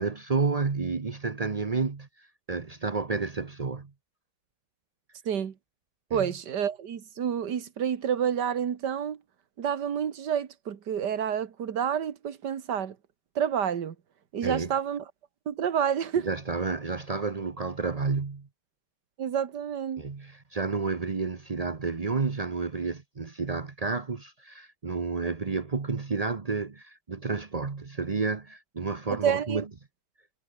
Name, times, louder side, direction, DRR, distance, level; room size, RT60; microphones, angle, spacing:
voice 1, 0.0-3.9 6.1-6.3 14.4-14.7 16.2-18.5 20.0-29.6, right 4 dB, 35° right, 0.6 m, -30 dB
voice 2, 6.1-9.2 9.6-13.0 13.4-14.0 14.3-15.1 15.5-16.3 19.2-20.1 29.1-29.6, right 8 dB, 55° right, 2.1 m, -29 dB
omnidirectional pair, 2.3 m